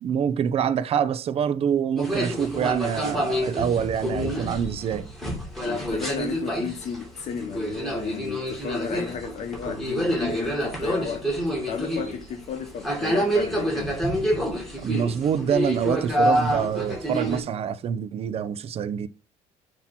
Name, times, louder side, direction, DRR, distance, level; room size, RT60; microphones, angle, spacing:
voice 1, 0.0-5.1 14.8-19.1, right 8 dB, 45° right, 0.6 m, -26 dB
sound 1, 2.0-17.4, equal, ahead, 2.5 m, -27 dB
voice 2, 5.6-11.3 11.6-14.1, left 7 dB, 50° left, 1.0 m, -33 dB
7.3 x 3.0 x 5.9 m
cardioid pair, 110°, 14 cm